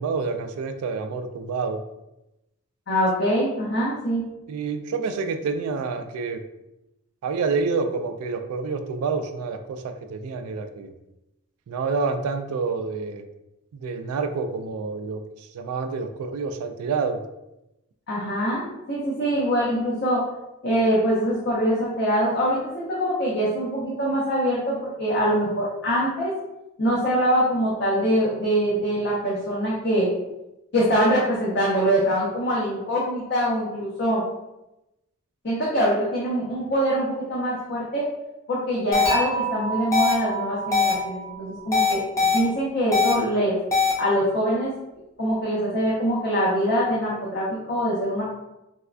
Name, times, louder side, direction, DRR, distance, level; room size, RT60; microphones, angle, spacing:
voice 1, 0.0-1.8 4.5-6.4 7.2-10.9 11.7-13.2 13.7-17.2, right 4 dB, 85° right, 10 dB, 0.3 m, -28 dB
voice 2, 2.9-4.2 18.1-20.3 20.6-26.3 26.8-30.1 30.7-34.2 35.4-38.1 38.5-43.6 44.0-44.7 45.2-48.2, equal, 50° left, -6 dB, 0.6 m, -24 dB
sound 1, 38.9-39.1 39.9-40.1 40.7-40.9 41.7-42.4 42.9-43.1 43.7-43.9, left 5 dB, 15° left, 0.3 m, -20 dB
Dishes pots and pans / Chink clink, 39.1-42.2, right 5 dB, 90° left, 1.5 m, -31 dB
3.4 x 2.2 x 2.4 m, 0.92 s
head